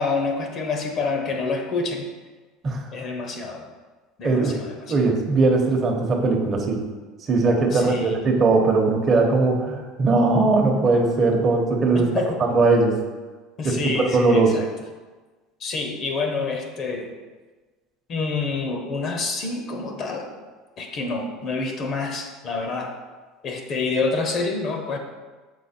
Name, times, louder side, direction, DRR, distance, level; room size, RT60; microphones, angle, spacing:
voice 1, 0.0-2.1 2.9-3.6 4.2-5.0 7.7-8.4 11.9-12.4 13.6-14.7 15.6-17.1 18.1-20.3 20.8-22.9 23.4-25.0, left 3 dB, 40° left, 4 dB, 0.8 m, -27 dB
voice 2, 4.2-4.6 4.9-6.8 7.3-12.1 12.5-13.0 13.6-14.6, right 3 dB, 30° right, 1 dB, 1.0 m, -19 dB
6.5 x 4.4 x 4.3 m, 1.3 s
cardioid pair, 140°, 0 cm